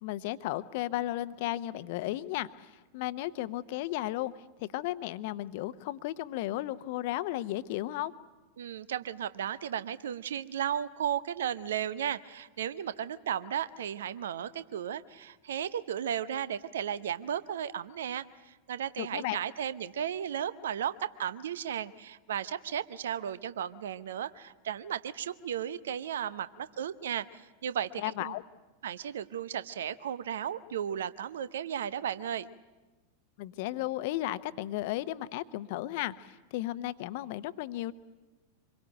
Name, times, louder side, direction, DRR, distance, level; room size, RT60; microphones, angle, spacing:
voice 1, 0.0-4.3 4.6-8.1 19.0-19.4 28.0-28.4 33.4-37.9, left 15 dB, 50° left, 13 dB, 0.9 m, -34 dB
voice 2, 8.6-28.3 28.8-32.5, right 9 dB, 60° right, 15 dB, 0.7 m, -35 dB
26.0 x 22.0 x 7.9 m, 1.2 s
figure-of-eight pair, 90°, 0 cm